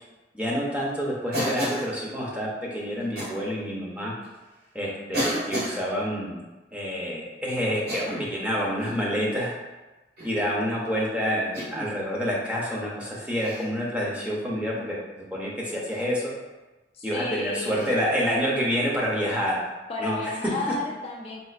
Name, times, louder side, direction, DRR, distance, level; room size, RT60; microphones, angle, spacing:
voice 1, 0.3-4.1 4.7-6.4 6.7-9.5 10.2-15.0 15.3-16.3 17.0-19.6 20.0-20.2 20.7-20.8, equal, 5° right, -5 dB, 0.6 m, -28 dB
Cough, 1.3-1.9 3.2-3.4 4.2-4.3 5.1-5.8 7.7-8.4 8.8-9.1 10.2-10.5 11.5-11.9 13.4-13.7 15.9-16.0 17.7-17.9, equal, 60° right, 1.5 m, -31 dB
voice 2, 16.9-17.9 19.9-21.4, left 2 dB, 35° left, -3 dB, 0.3 m, -32 dB
4.2 x 2.4 x 2.4 m, 1.1 s
head